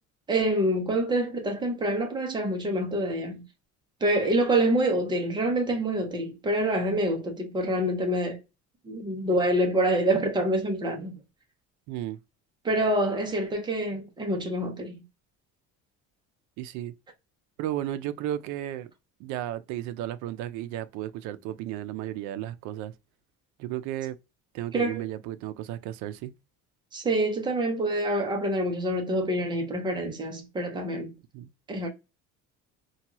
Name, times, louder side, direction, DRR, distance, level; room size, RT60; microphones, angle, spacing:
voice 1, 0.3-3.4 4.0-8.4 8.9-11.1 12.6-15.0 24.7-25.1 26.9-31.1 31.7-31.9, right 1 dB, 15° right, 0.5 m, -26 dB
voice 2, 11.9-12.2 16.6-16.9 17.6-18.9 19.2-22.9 23.6-24.2 24.5-26.3 31.3-31.5, right 12 dB, 65° right, 0.4 m, -34 dB
2.7 x 2.3 x 2.9 m
cardioid pair, 180°, 32 cm